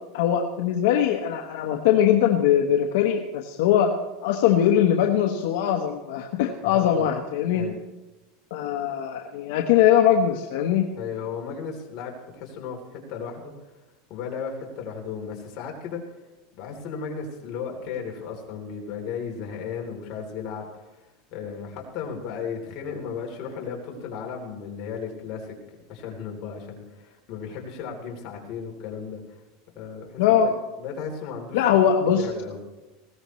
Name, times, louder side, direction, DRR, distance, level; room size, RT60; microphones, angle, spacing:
voice 1, 0.1-3.9 4.2-7.6 8.5-10.9 30.2-30.5 31.5-32.3, left 9 dB, 70° left, 2 dB, 1.1 m, -21 dB
voice 2, 6.6-7.1 7.5-7.8 10.9-13.5 14.1-16.1 16.6-20.9 21.3-25.6 25.9-29.4 29.8-30.5 30.8-31.7 32.0-32.6, left 6 dB, 45° left, 0 dB, 3.5 m, -35 dB
20.0 x 16.5 x 3.2 m, 1.1 s
supercardioid pair, 150°, 0 cm